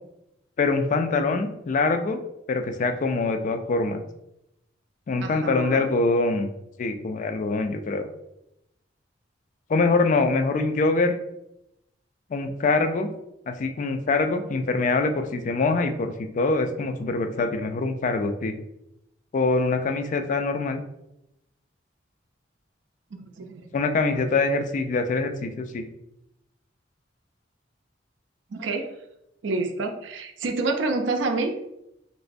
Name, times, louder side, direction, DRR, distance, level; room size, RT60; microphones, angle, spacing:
voice 1, 0.6-2.2 2.5-4.0 5.1-6.5 6.8-8.1 9.7-11.1 12.3-13.1 13.5-18.5 19.3-20.8 23.7-25.9, left 3 dB, 40° left, 7 dB, 0.3 m, -24 dB
voice 2, 5.2-5.9 23.1-23.7 28.5-28.9 29.4-31.5, right 3 dB, 75° right, 5 dB, 0.4 m, -28 dB
3.2 x 2.9 x 2.6 m, 0.84 s
head